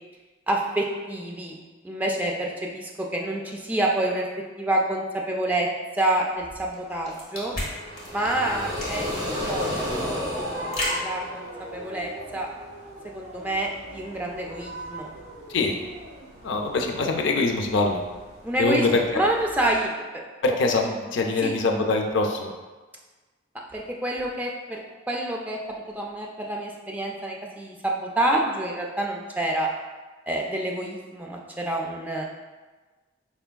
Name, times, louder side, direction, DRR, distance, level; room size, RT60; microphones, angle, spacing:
voice 1, 0.5-1.5 1.8-4.3 4.6-5.7 5.9-7.5 8.1-9.1 9.5-9.7 9.9-11.5 11.7-12.5 13.0-15.1 18.4-18.9 19.1-20.2 20.8-20.9 21.4-21.5 23.7-24.8 25.1-29.7 30.3-32.2, right 1 dB, 10° right, -1 dB, 0.3 m, -28 dB
sound 1, 6.7-11.9, left 1 dB, 35° left, 1.1 m, -34 dB
sound 2, 7.4-19.9, equal, 85° right, 0.9 m, -42 dB
sound 3, 7.8-11.8, left 1 dB, 25° right, 1.3 m, -31 dB
voice 2, 16.4-18.0 18.6-19.2 20.4-22.5, left 3 dB, 65° left, 3 dB, 0.4 m, -23 dB
4.5 x 3.3 x 2.2 m, 1.3 s
head